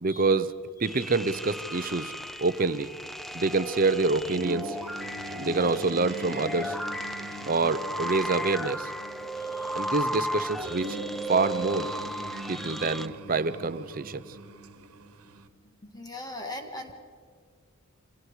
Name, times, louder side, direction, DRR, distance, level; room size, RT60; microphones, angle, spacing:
voice 1, 0.0-0.5 0.8-2.9 3.3-4.8 5.4-6.8 7.4-8.9 9.7-11.0 11.3-11.9 12.5-14.2, right 3 dB, 40° right, 13 dB, 0.7 m, -26 dB
sound 1, 0.8-13.1, equal, ahead, 0.5 m, -35 dB
sound 2, 4.2-15.5, right 2 dB, 85° right, 1.4 m, -41 dB
voice 2, 5.6-6.0 7.2-7.4 9.4-9.9 15.9-16.9, left 1 dB, 15° left, 4 dB, 1.9 m, -41 dB
29.5 x 26.0 x 4.9 m, 2.1 s
head